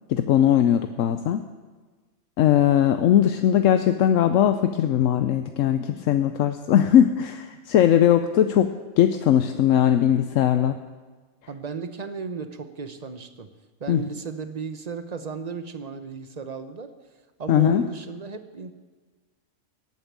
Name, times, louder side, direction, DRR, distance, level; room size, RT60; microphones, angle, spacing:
voice 1, 0.1-1.4 2.4-8.7 9.0-10.8 13.9-14.0 17.5-17.9, left 10 dB, 80° left, 9 dB, 1.0 m, -19 dB
voice 2, 11.5-13.5 13.8-16.9 17.4-18.7, right 5 dB, 35° right, 10 dB, 0.9 m, -35 dB
18.5 x 9.0 x 7.4 m, 1.4 s
omnidirectional pair, 1.4 m